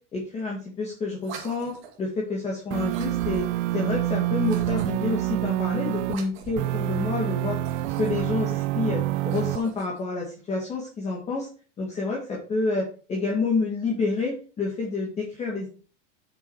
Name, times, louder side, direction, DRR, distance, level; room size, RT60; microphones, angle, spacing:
voice 1, 0.1-3.4 3.7-7.6 8.0-11.5 11.8-12.8 13.1-15.7, left 3 dB, 15° left, -2 dB, 1.9 m, -28 dB
sound 1, 1.2-2.0 2.9-3.7 4.4-5.2 6.0-6.8 7.5-8.5 9.1-10.0, right 6 dB, 30° right, 2.2 m, -42 dB
sound 2, 2.7-6.2 6.6-9.6, right 16 dB, 70° right, 0.6 m, -27 dB
7.9 x 6.3 x 5.4 m, 0.37 s
supercardioid pair, 175°, 37 cm